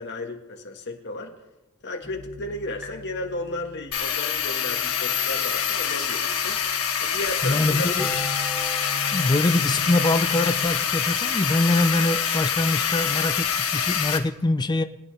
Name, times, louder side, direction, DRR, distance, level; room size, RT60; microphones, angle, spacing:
voice 1, 0.0-1.3 1.8-6.6 7.0-7.9, left 2 dB, 55° left, 3 dB, 1.6 m, -34 dB
sound 1, 2.0-10.7, left 1 dB, 5° right, 3.6 m, -40 dB
sound 2, 3.9-14.2, left 7 dB, 90° left, 1.4 m, -25 dB
voice 2, 7.4-8.1 9.1-14.8, left 2 dB, 20° left, 10 dB, 0.4 m, -24 dB
22.5 x 9.7 x 3.4 m, 1.0 s
head